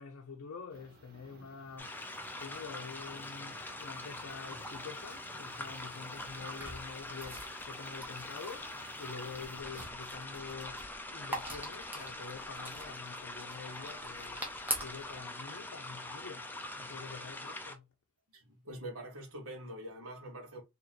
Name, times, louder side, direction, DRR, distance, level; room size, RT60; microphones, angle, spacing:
voice 1, 0.0-2.0 2.4-14.5 14.8-17.9, left 5 dB, 75° left, 0.5 m, -47 dB
sound 1, 0.7-9.6, right 2 dB, 45° right, 0.9 m, -58 dB
sound 2, 1.8-17.7, left 2 dB, 10° left, 0.4 m, -44 dB
sound 3, 6.1-15.2, right 1 dB, 10° right, 0.9 m, -44 dB
voice 2, 18.3-20.6, right 1 dB, 70° right, 1.3 m, -45 dB
3.0 x 2.9 x 3.9 m
head